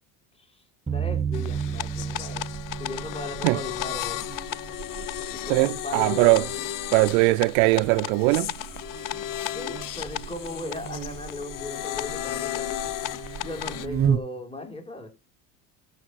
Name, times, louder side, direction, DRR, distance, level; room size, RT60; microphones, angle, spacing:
voice 1, 0.9-2.5 2.8-4.2 5.3-6.7 9.5-12.9 13.4-15.1, left 2 dB, 15° left, 3.6 m, -37 dB
sound 1, 0.9-4.6, right 7 dB, 15° right, 1.2 m, -32 dB
Buzz, 1.0-14.2, right 8 dB, 30° right, 0.7 m, -36 dB
sound 2, 1.3-13.9, left 14 dB, 50° left, 0.7 m, -34 dB
voice 2, 5.5-6.5 6.9-8.5, right 23 dB, 80° right, 0.6 m, -20 dB
12.5 x 6.5 x 4.6 m
supercardioid pair, 85°, 42 cm